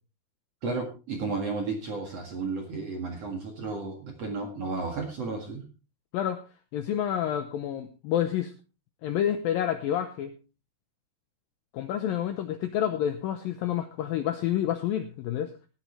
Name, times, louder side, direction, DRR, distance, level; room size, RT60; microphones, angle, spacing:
voice 1, 0.6-5.6, right 3 dB, 50° right, 3 dB, 2.1 m, -33 dB
voice 2, 6.7-8.5 9.0-10.3 11.7-15.5, left 10 dB, 90° left, 8 dB, 2.0 m, -29 dB
17.0 x 11.5 x 3.3 m, 0.31 s
omnidirectional pair, 5.3 m